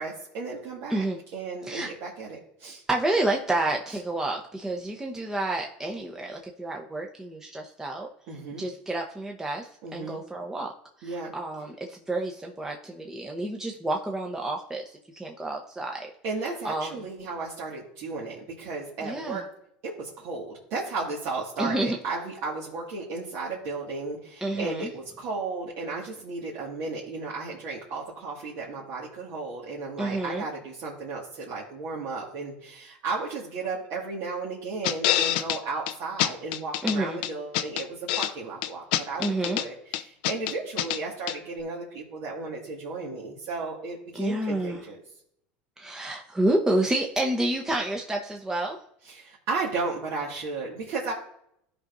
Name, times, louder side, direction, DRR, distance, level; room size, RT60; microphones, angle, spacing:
voice 1, 0.0-1.0 1.3-2.8 8.3-8.7 9.8-10.2 11.0-11.3 16.2-19.4 19.8-45.0 49.0-51.1, right 3 dB, 60° right, -5 dB, 2.0 m, -34 dB
voice 2, 0.9-1.2 1.6-1.9 2.9-8.1 8.6-10.7 11.0-14.8 15.1-16.1 16.6-16.9 19.0-19.4 21.6-22.0 24.4-24.9 30.0-30.4 36.8-37.2 39.2-39.6 44.1-44.8 45.8-48.8, right 1 dB, 10° right, 1 dB, 0.9 m, -29 dB
sound 1, 34.8-35.6 35.9-36.0 36.2-37.0 37.2-38.3 38.6-39.7 39.9-41.0 41.3-41.4, left 13 dB, 75° left, 0.5 m, -26 dB
14.0 x 5.2 x 2.6 m, 0.74 s
supercardioid pair, 105°, 5 cm